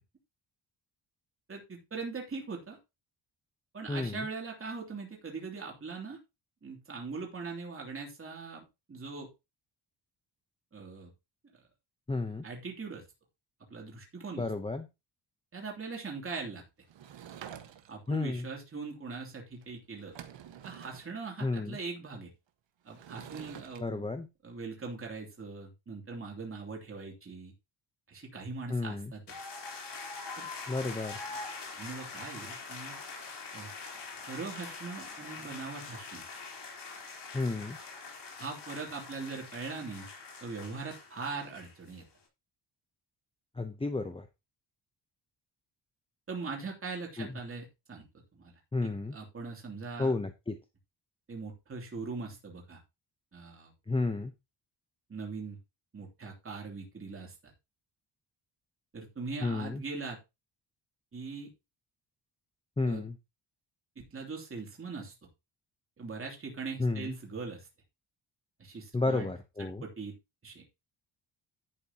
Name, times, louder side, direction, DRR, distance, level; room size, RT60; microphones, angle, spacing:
voice 1, 1.5-2.8 3.7-6.2 6.6-8.6 8.9-9.3 10.7-11.1 12.4-13.0 13.7-14.4 15.5-16.6 17.9-20.2 20.6-22.3 22.8-24.1 24.4-27.5 28.1-29.2 30.4-30.5 30.8-30.9 31.8-33.0 33.5-33.7 34.3-36.2 38.4-40.1 40.4-42.0 46.3-48.1 48.3-48.5 48.8-50.1 51.3-52.8 53.3-53.7 55.1-55.6 55.9-57.5 58.9-60.2 61.1-61.5 62.8-63.0 64.0-65.1 66.0-67.7 68.6-69.3 69.8-70.1 70.4-70.6, right 4 dB, 30° right, 0 dB, 3.0 m, -41 dB
voice 2, 3.9-4.3 12.1-12.5 14.4-14.8 18.1-18.5 21.4-21.8 23.8-24.3 28.7-29.1 30.7-31.2 37.3-37.8 43.5-44.3 47.2-47.3 48.7-49.2 50.0-50.6 53.9-54.3 59.4-59.8 62.8-63.2 66.8-67.1 68.9-69.8, left 3 dB, 15° left, 7 dB, 0.8 m, -32 dB
Sliding door / Wood, 16.9-18.1 19.6-19.7 20.0-21.1 22.9-23.8, right 9 dB, 85° right, 1.5 m, -48 dB
sound 1, 29.3-42.0, left 4 dB, 70° left, 3.8 m, -44 dB
11.0 x 8.4 x 2.9 m, 0.24 s
wide cardioid pair, 140°, 43 cm